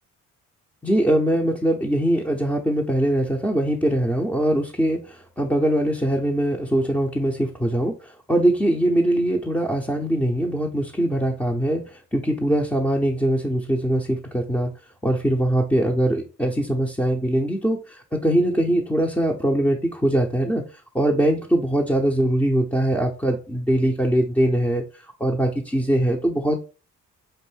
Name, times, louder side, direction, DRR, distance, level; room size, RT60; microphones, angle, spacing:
voice 1, 0.8-14.7 15.0-20.6 20.9-24.8 25.2-26.7, right 1 dB, 5° left, -2 dB, 0.6 m, -22 dB
5.3 x 2.5 x 3.3 m, 0.33 s
cardioid pair, 90°, 30 cm